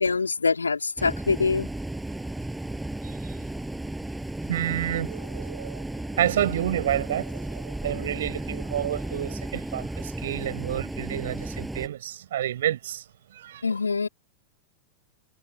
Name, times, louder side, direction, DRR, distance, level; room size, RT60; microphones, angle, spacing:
voice 1, 0.0-1.7 13.6-14.1, left 4 dB, 75° left, 4.8 m, -24 dB
sound 1, 1.0-11.9, right 1 dB, 5° right, 7.4 m, -34 dB
voice 2, 3.0-3.4 4.5-13.0 13.3-13.6, right 11 dB, 60° right, 6.8 m, -30 dB
figure-of-eight pair, 90°, 0 cm